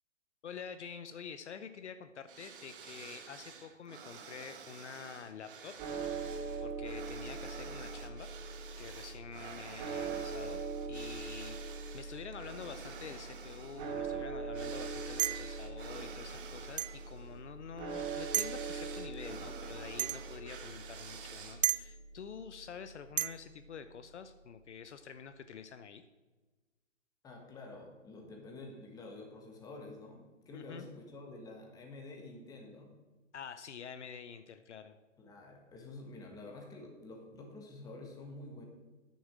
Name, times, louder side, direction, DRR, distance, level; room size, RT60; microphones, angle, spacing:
voice 1, 0.4-5.7 6.6-8.3 8.8-26.0 30.5-30.9 33.3-35.0, left 7 dB, 60° left, 10 dB, 0.7 m, -48 dB
sound 1, 2.3-21.8, right 6 dB, 40° right, 1.2 m, -50 dB
sound 2, 5.8-24.0, right 4 dB, 20° right, 0.9 m, -42 dB
sound 3, 15.2-15.5 16.8-17.0 18.3-18.6 20.0-20.2 21.6-21.8 23.2-23.4, right 11 dB, 70° right, 0.5 m, -32 dB
voice 2, 27.2-32.9 35.2-38.7, left 2 dB, 10° left, 1 dB, 1.4 m, -49 dB
9.4 x 7.2 x 6.1 m, 1.2 s
hypercardioid pair, 140°, 39 cm